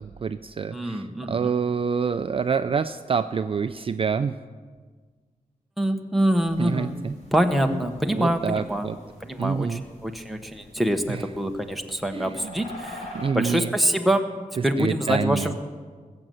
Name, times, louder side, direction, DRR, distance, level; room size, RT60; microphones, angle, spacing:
voice 1, 0.0-4.4 6.6-7.1 8.1-9.0 9.4-9.8 11.1-11.2 12.1-12.5 13.1-13.7 14.6-15.5, right 6 dB, 40° right, 10 dB, 0.4 m, -27 dB
voice 2, 0.7-1.5 5.8-7.0 7.3-8.9 9.2-14.3 14.6-15.6, equal, ahead, 4 dB, 0.9 m, -25 dB
sound 1, 6.3-13.3, left 1 dB, 50° left, 5.7 m, -46 dB
20.0 x 7.7 x 7.7 m, 1.5 s
wide cardioid pair, 170°, 14 cm